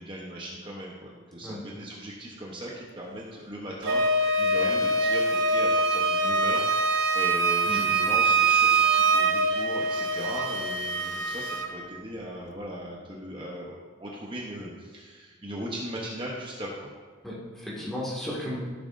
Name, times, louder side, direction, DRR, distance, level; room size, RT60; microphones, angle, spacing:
voice 1, 0.0-4.0 4.4-6.7 7.1-16.9, equal, 25° right, -3 dB, 1.0 m, -38 dB
Wind instrument woodwind instrument, 3.8-11.7, right 3 dB, 70° right, 0.8 m, -24 dB
voice 2, 17.2-18.6, left 1 dB, ahead, -6 dB, 2.1 m, -34 dB
14.0 x 7.0 x 2.7 m, 1.4 s
head